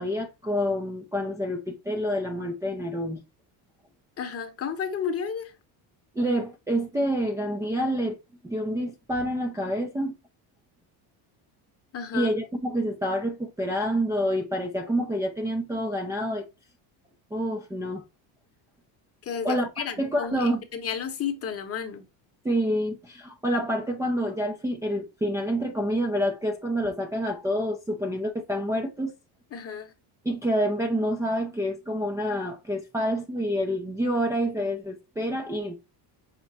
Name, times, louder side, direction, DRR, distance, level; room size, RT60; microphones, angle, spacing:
voice 1, 0.0-3.2 6.1-8.2 8.4-10.1 12.1-16.5 17.3-18.0 19.4-20.6 22.4-29.1 30.2-35.7, equal, 5° right, 0.4 m, -27 dB
voice 2, 4.2-5.5 11.9-12.3 19.2-22.0 29.5-29.9, left 7 dB, 30° left, 0.9 m, -32 dB
5.9 x 2.1 x 4.0 m
cardioid pair, 140°, 45 cm